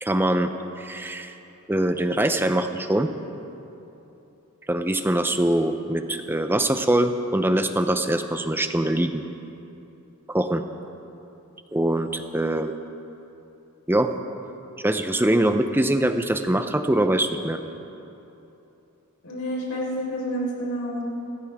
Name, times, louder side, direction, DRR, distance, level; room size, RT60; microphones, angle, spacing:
voice 1, 0.0-0.5 0.8-1.3 1.7-3.1 4.7-9.2 10.3-10.6 11.7-12.7 13.9-14.1 14.8-17.6, right 1 dB, 10° right, 8 dB, 0.6 m, -23 dB
voice 2, 19.2-21.0, equal, 90° left, -4 dB, 4.4 m, -29 dB
27.5 x 13.5 x 3.6 m, 2.9 s
head